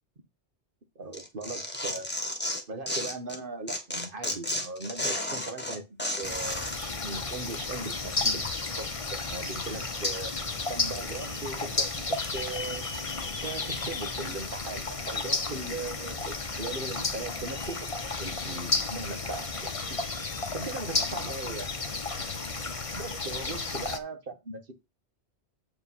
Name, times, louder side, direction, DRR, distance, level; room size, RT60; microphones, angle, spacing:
voice 1, 0.9-2.2 2.7-5.8 6.2-10.3 10.7-12.8 13.4-20.0 20.5-21.7 22.5-22.7 22.9-24.7, right 3 dB, 50° right, 7 dB, 1.6 m, -39 dB
Tearing, 1.1-3.4 3.7-6.8, left 1 dB, 10° left, 1.7 m, -33 dB
sound 1, 6.2-24.0, left 3 dB, 30° left, 1.1 m, -33 dB
8.1 x 5.3 x 5.6 m, 0.24 s
omnidirectional pair, 1.1 m